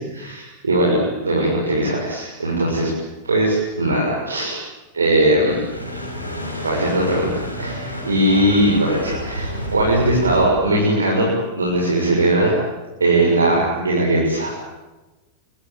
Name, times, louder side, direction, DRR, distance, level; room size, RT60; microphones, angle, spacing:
voice 1, 0.0-2.9 3.2-4.6 4.9-5.6 6.6-12.5 13.0-14.5, right 1 dB, 75° right, -3 dB, 7.2 m, -19 dB
sound 1, 5.4-10.5, equal, 90° left, 6.3 m, -30 dB
27.5 x 23.0 x 9.3 m, 1.1 s
figure-of-eight pair, 90°, 0 cm